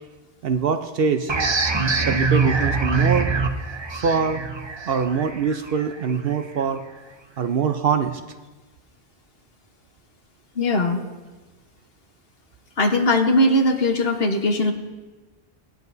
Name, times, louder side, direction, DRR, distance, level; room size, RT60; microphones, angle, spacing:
voice 1, 0.4-1.3 2.1-3.3 3.9-4.4 4.9-6.8 7.4-8.2, right 6 dB, 60° right, 7 dB, 0.8 m, -23 dB
sound 1, 1.3-6.6, right 4 dB, 30° right, 0.7 m, -24 dB
voice 2, 10.6-11.0 12.8-14.7, left 1 dB, 60° left, 4 dB, 1.3 m, -19 dB
19.0 x 10.5 x 2.7 m, 1.2 s
omnidirectional pair, 1.1 m